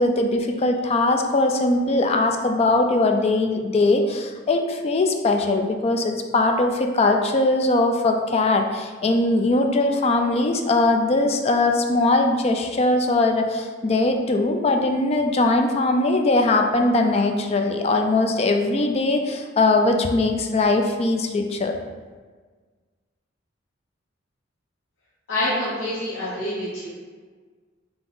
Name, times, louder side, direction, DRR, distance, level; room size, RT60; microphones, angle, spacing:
voice 1, 0.0-21.8, left 2 dB, 30° left, 4 dB, 0.3 m, -21 dB
voice 2, 25.3-26.9, left 1 dB, 70° left, -8 dB, 0.8 m, -26 dB
3.7 x 2.9 x 3.8 m, 1.5 s
head